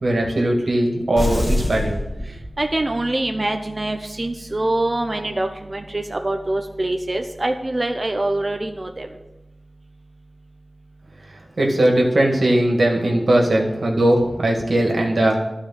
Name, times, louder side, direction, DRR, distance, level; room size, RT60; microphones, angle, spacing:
voice 1, 0.0-2.0 11.6-15.4, right 1 dB, 80° right, 0 dB, 2.1 m, -19 dB
sound 1, 1.1-3.0, left 1 dB, 25° left, 2.2 m, -25 dB
voice 2, 2.6-9.1, right 2 dB, 40° right, 5 dB, 0.7 m, -24 dB
12.0 x 5.1 x 7.4 m, 0.98 s
wide cardioid pair, 60°, 0 cm